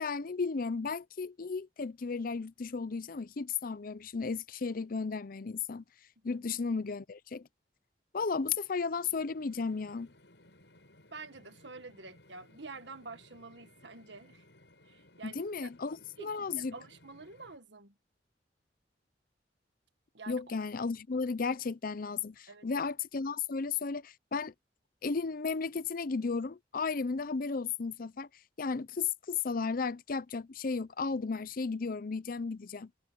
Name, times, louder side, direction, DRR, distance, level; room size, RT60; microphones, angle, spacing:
voice 1, 0.0-5.8 6.2-7.5 8.1-10.1 15.2-16.7 20.3-24.5 25.0-28.3 28.6-32.9, left 4 dB, 50° left, 0.6 m, -34 dB
sound 1, 8.5-17.6, left 1 dB, 75° left, 7.2 m, -61 dB
voice 2, 11.1-14.5 14.8-15.7 16.2-18.0 20.1-20.6 22.5-22.9, right 3 dB, 75° right, 1.7 m, -48 dB
head